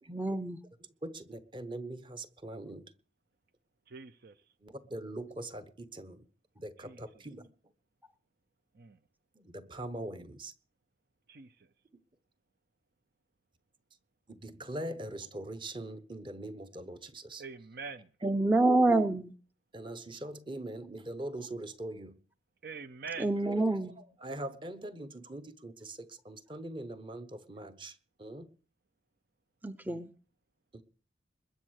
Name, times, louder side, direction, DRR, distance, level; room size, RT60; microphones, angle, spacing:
voice 1, 0.1-0.6 18.2-19.3 23.2-24.0 29.6-30.1, right 2 dB, 10° right, 0.6 m, -27 dB
voice 2, 1.0-2.9 4.6-6.3 6.6-7.5 9.3-10.5 14.3-17.4 19.7-22.2 23.4-28.5, right 1 dB, 25° right, 1.0 m, -42 dB
voice 3, 3.9-4.3 6.8-7.0 8.8-9.0 11.3-11.5 17.4-18.1 22.6-23.3 29.8-30.0, right 5 dB, 55° right, 0.6 m, -44 dB
21.0 x 7.2 x 6.5 m
head